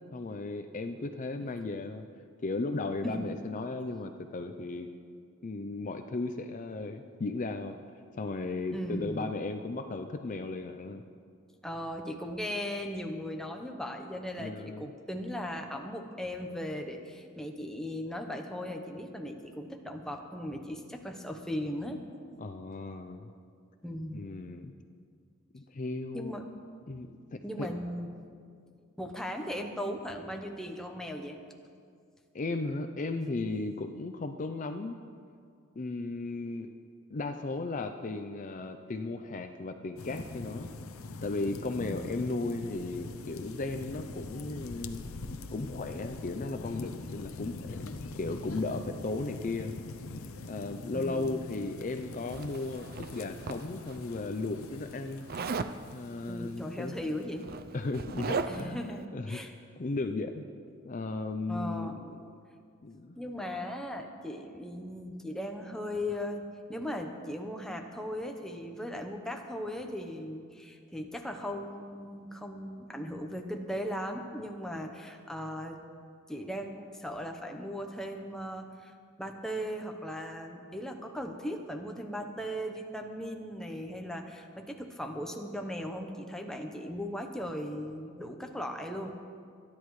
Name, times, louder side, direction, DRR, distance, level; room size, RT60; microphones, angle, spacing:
voice 1, 0.1-2.0 2.4-4.9 5.4-7.8 8.1-11.0 14.4-14.9 22.4-23.3 24.1-24.7 25.5-26.3 26.9-27.7 32.3-35.0 35.8-36.7 37.1-40.7 41.2-45.0 45.5-49.7 50.5-55.2 55.9-56.9 57.7-58.8 59.1-59.4 59.8-60.4 60.8-62.1 62.8-63.2, left 3 dB, 40° left, 7 dB, 0.5 m, -35 dB
voice 2, 8.7-9.3 11.6-22.0 23.8-24.2 26.1-26.4 27.4-28.1 29.0-31.4 41.8-42.1 50.9-51.5 56.3-57.5 58.4-59.5 61.5-62.0 63.2-66.4 66.7-75.8 76.3-78.9 79.2-89.1, equal, 5° left, 3 dB, 0.9 m, -38 dB
sound 1, 40.0-57.2, left 3 dB, 85° left, 0.7 m, -43 dB
Zipper (clothing), 52.3-54.0 55.3-55.8 56.9-57.0 57.3-58.8, right 4 dB, 45° right, 0.5 m, -36 dB
26.0 x 10.5 x 3.2 m, 2.2 s
head